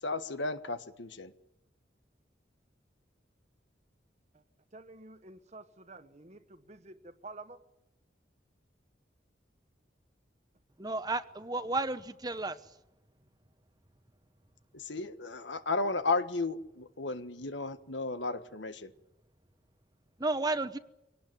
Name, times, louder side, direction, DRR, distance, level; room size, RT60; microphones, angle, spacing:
voice 1, 0.0-1.3 14.7-18.9, left 3 dB, 85° left, 1.5 m, -34 dB
voice 2, 4.7-7.6, right 2 dB, 40° right, 1.4 m, -50 dB
voice 3, 10.8-12.6 20.2-20.8, right 2 dB, 20° right, 1.0 m, -32 dB
24.0 x 18.5 x 9.3 m
head